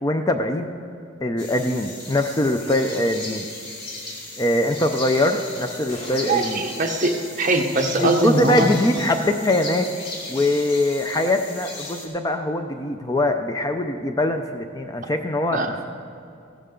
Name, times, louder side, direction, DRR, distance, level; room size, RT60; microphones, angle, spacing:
voice 1, 0.0-0.7 1.2-3.5 4.4-6.6 8.0-9.9 10.3-15.8, left 1 dB, 20° left, 6 dB, 0.4 m, -22 dB
sound 1, 1.4-12.1, left 2 dB, 50° left, 2.2 m, -36 dB
sound 2, 5.9-8.2, left 1 dB, 85° left, 3.7 m, -42 dB
voice 2, 6.3-8.7 15.5-15.8, right 2 dB, 40° right, 2 dB, 1.1 m, -22 dB
15.5 x 12.5 x 3.8 m, 2.5 s
head